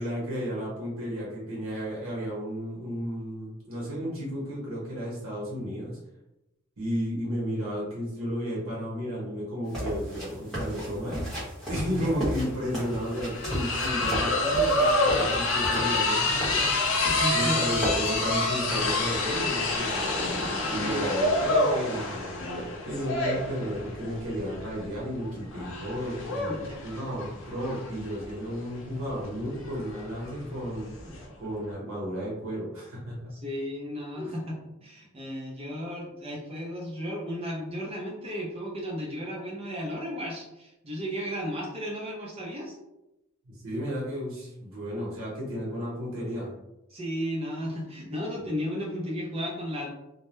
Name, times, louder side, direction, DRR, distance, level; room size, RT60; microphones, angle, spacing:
voice 1, 0.0-6.0 6.8-11.3 11.7-19.9 20.7-26.5 26.8-30.9 31.4-33.3 34.1-34.3 43.4-46.5, equal, 75° right, -5 dB, 0.9 m, -33 dB
sound 1, 9.6-18.2, equal, ahead, 0.9 m, -35 dB
sound 2, 12.0-12.1 12.4-31.2, left 2 dB, 65° left, 0.6 m, -28 dB
voice 2, 17.1-17.6 20.7-21.1 26.5-26.8 33.3-42.7 46.9-49.9, equal, 30° right, -2 dB, 0.6 m, -34 dB
2.2 x 2.1 x 3.0 m, 0.92 s
head